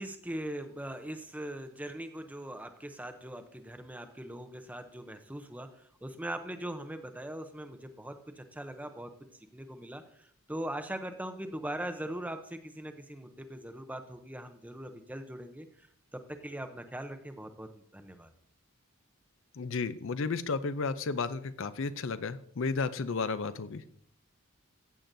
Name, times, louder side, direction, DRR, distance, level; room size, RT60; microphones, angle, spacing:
voice 1, 0.0-9.1 9.5-15.9 16.1-18.3, right 1 dB, 5° right, 7 dB, 0.6 m, -41 dB
voice 2, 19.6-23.8, left 4 dB, 60° left, 13 dB, 0.5 m, -33 dB
15.5 x 7.5 x 2.6 m, 0.62 s
head